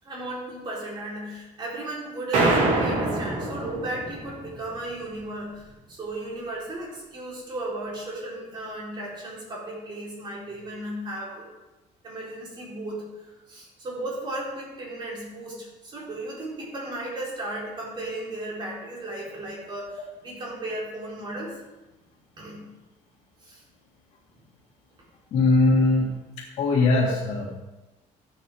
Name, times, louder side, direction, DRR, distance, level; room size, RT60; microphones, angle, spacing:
voice 1, 0.0-11.5 12.0-21.6 22.4-22.7 23.4-23.6, right 1 dB, 35° right, -5 dB, 4.0 m, -35 dB
sound 1, 2.3-4.7, right 2 dB, 60° right, 2.7 m, -25 dB
voice 2, 25.3-26.1 26.4-27.6, left 3 dB, 55° left, -7 dB, 2.1 m, -21 dB
14.5 x 8.6 x 3.6 m, 1.0 s
cardioid pair, 155°, 14 cm